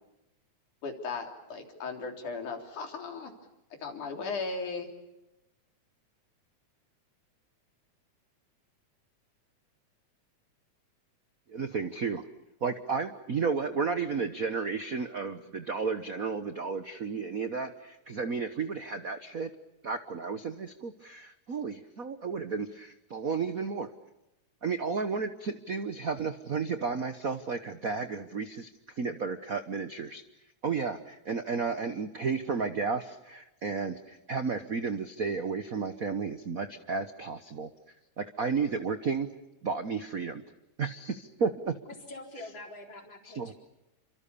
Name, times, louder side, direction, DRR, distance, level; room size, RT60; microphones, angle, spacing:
voice 1, 0.8-3.3 3.8-4.9, left 4 dB, 85° left, 4 dB, 4.9 m, -36 dB
voice 2, 11.5-12.2 12.6-19.5 19.8-23.9 24.6-28.7 29.0-30.2 30.6-37.7 38.2-39.3 39.6-40.4 40.8-41.7 43.3-43.5, right 5 dB, 70° right, 10 dB, 0.8 m, -32 dB
voice 3, 41.9-43.5, left 2 dB, 40° left, 2 dB, 4.8 m, -45 dB
29.5 x 25.5 x 7.0 m, 0.93 s
omnidirectional pair, 3.4 m